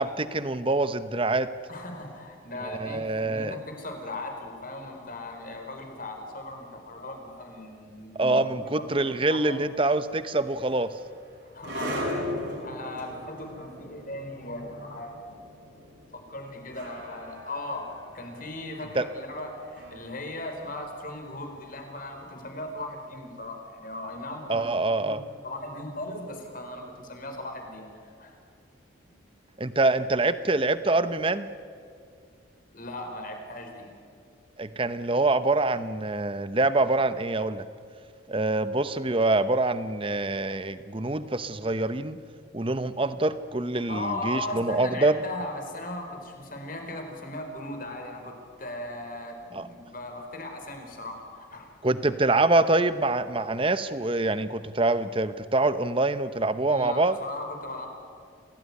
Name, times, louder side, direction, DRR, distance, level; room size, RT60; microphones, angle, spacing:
voice 1, 0.0-1.5 2.6-3.6 8.2-10.9 18.9-19.0 24.5-25.2 29.6-31.5 34.6-37.6 38.3-42.2 42.5-45.2 49.5-49.7 51.8-57.2, right 2 dB, 25° right, 13 dB, 0.9 m, -25 dB
voice 2, 1.7-8.5 8.8-9.6 11.5-12.1 12.6-15.4 16.1-17.9 18.1-24.7 25.0-25.2 25.4-28.4 29.1-29.2 32.7-33.9 43.7-51.7 56.7-57.9, left 1 dB, 45° left, 4 dB, 4.4 m, -38 dB
sound 1, 10.5-21.6, left 1 dB, 60° right, 6.1 m, -39 dB
28.0 x 18.5 x 9.8 m, 2.2 s
head